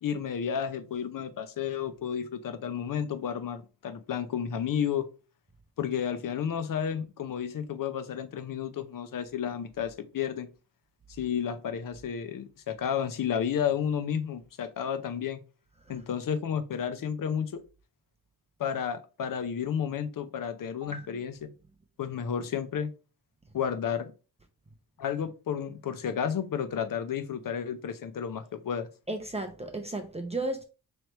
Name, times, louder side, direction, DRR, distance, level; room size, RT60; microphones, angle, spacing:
voice 1, 0.0-5.1 5.8-10.5 11.2-15.4 15.9-17.6 18.6-21.5 22.0-22.9 23.5-24.1 25.0-28.9, left 8 dB, 55° left, 0.7 m, -32 dB
voice 2, 20.8-21.2 29.1-30.6, right 2 dB, 15° right, 0.6 m, -35 dB
3.2 x 3.2 x 4.1 m
cardioid pair, 90°, 39 cm